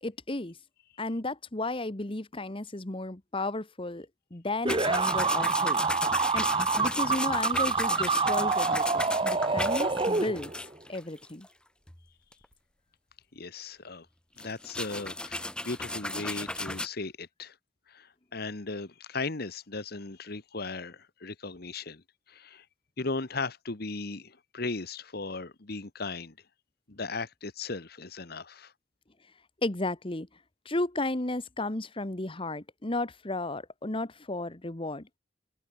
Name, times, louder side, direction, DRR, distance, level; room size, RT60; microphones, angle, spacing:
voice 1, 0.0-0.6 1.0-5.8 6.3-6.5 6.8-10.5 10.9-11.5 29.6-30.3 30.6-35.2, left 2 dB, 30° left, 1.4 m, -33 dB
sound 1, 4.6-10.7, right 4 dB, 30° right, 1.3 m, -27 dB
sound 2, 4.7-11.5 11.9-12.0 12.3-12.5 14.4-16.9, left 1 dB, 5° left, 0.8 m, -35 dB
voice 2, 13.3-14.1 14.4-17.6 17.9-22.6 23.0-26.3 26.9-28.7, left 3 dB, 55° left, 1.4 m, -37 dB
head